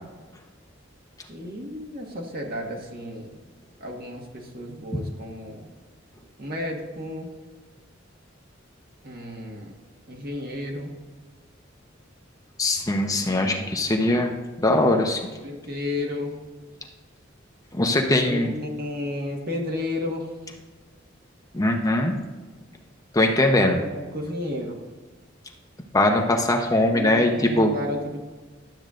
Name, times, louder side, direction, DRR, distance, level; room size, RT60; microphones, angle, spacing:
voice 1, 1.3-3.4 3.8-5.7 6.4-7.3 9.0-9.8 10.1-11.0 13.2-13.8 15.4-16.4 17.8-20.3 23.5-24.8 26.9-28.2, left 1 dB, 50° right, 0 dB, 1.5 m, -33 dB
voice 2, 12.6-14.3 14.6-15.3 17.8-18.5 21.5-22.1 23.1-23.8 25.9-27.7, left 1 dB, 20° left, 3 dB, 0.7 m, -21 dB
12.0 x 7.8 x 2.5 m, 1.3 s
head